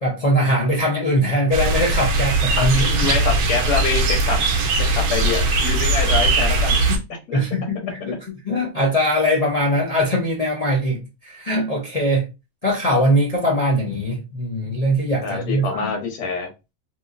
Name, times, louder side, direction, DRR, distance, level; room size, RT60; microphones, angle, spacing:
voice 1, 0.0-3.1 6.9-7.0 7.3-12.3 12.6-15.9, equal, 60° left, 0.4 m, -21 dB
sound 1, 1.5-7.0, right 2 dB, 70° right, 1.1 m, -20 dB
voice 2, 2.6-4.4 4.9-6.8 7.3-7.4 15.2-16.5, left 4 dB, 85° left, 1.4 m, -25 dB
2.9 x 2.6 x 2.5 m
omnidirectional pair, 1.7 m